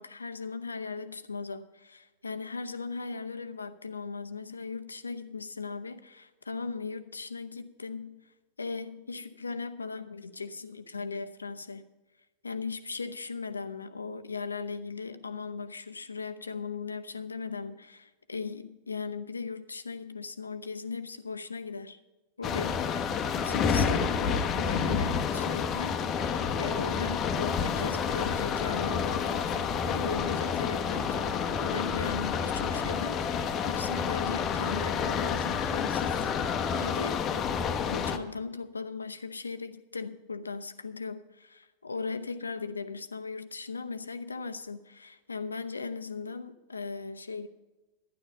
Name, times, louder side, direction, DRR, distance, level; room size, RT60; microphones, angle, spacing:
voice 1, 0.0-8.3 8.6-11.8 12.4-22.0 22.4-31.3 31.6-36.3 36.7-37.3 37.9-47.5, left 4 dB, 75° left, 10 dB, 0.7 m, -38 dB
sound 1, 22.4-38.2, left 6 dB, 30° left, 0.9 m, -29 dB
12.0 x 10.5 x 5.3 m, 1.1 s
figure-of-eight pair, 90°, 0 cm